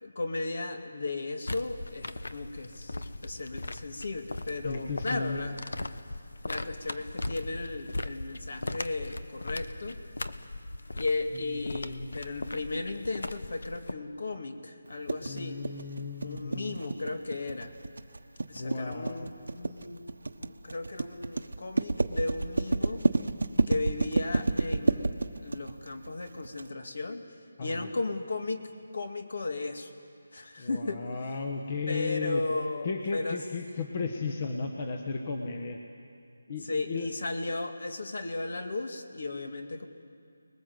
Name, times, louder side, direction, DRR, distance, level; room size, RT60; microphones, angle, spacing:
voice 1, 0.0-5.6 6.5-10.0 10.9-15.6 16.2-17.7 18.5-20.0 20.3-23.1 23.7-27.2 27.6-29.9 30.3-31.0 31.9-33.4 36.6-39.9, left 2 dB, 60° left, 6 dB, 2.4 m, -35 dB
sound 1, 1.5-13.9, left 2 dB, 80° left, 1.2 m, -39 dB
voice 2, 4.6-5.4 11.6-12.1 15.2-16.8 18.5-19.3 27.6-27.9 30.6-32.4 32.8-35.8 36.5-37.1, left 4 dB, 30° left, 4 dB, 1.4 m, -35 dB
sound 2, 15.1-26.6, right 2 dB, 85° right, 1.3 m, -29 dB
29.5 x 20.5 x 7.9 m, 2.4 s
figure-of-eight pair, 175°, 0 cm